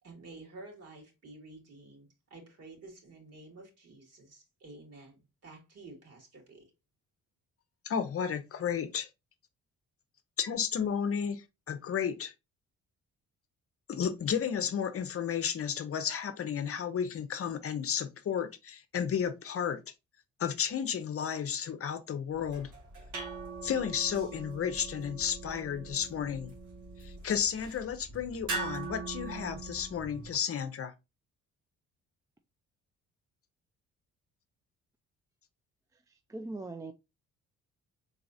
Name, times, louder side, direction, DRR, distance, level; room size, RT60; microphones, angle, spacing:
voice 1, 0.0-6.7, right 2 dB, 55° right, 2.7 m, -51 dB
voice 2, 7.8-9.1 10.4-12.3 13.9-19.8 20.4-22.7 23.6-26.5 27.0-30.9, left 8 dB, 50° left, 0.7 m, -33 dB
sound 1, 22.3-30.4, right 4 dB, 75° right, 2.0 m, -42 dB
voice 3, 36.1-36.9, right 2 dB, 10° right, 0.4 m, -41 dB
4.6 x 4.0 x 2.6 m
cardioid pair, 90°, 30 cm